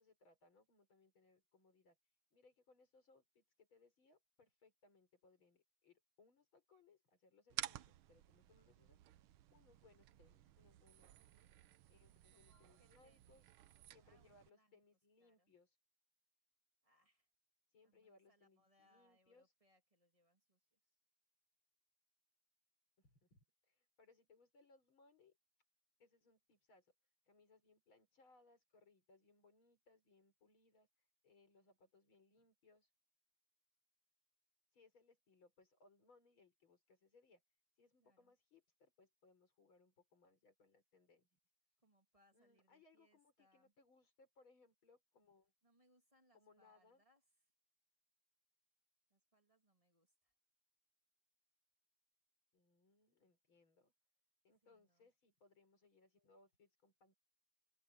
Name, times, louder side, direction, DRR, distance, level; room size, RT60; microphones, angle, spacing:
voice 1, 0.0-11.3 11.9-13.5 13.9-15.8 17.7-19.5 23.0-25.4 26.0-32.9 34.7-37.4 37.7-41.4 42.3-45.5 46.3-47.0 52.5-53.9 54.4-57.2, left 3 dB, 80° left, 6.2 m, -71 dB
sound 1, 7.5-14.5, right 13 dB, 85° right, 1.6 m, -53 dB
voice 2, 10.1-10.5 11.2-11.5 12.3-13.5 13.8-14.8 15.2-15.5 16.8-17.3 17.8-21.0 38.0-38.3 41.8-43.7 45.6-47.2 49.1-50.3 54.6-55.1, equal, 15° right, 2.5 m, -77 dB
omnidirectional pair, 2.2 m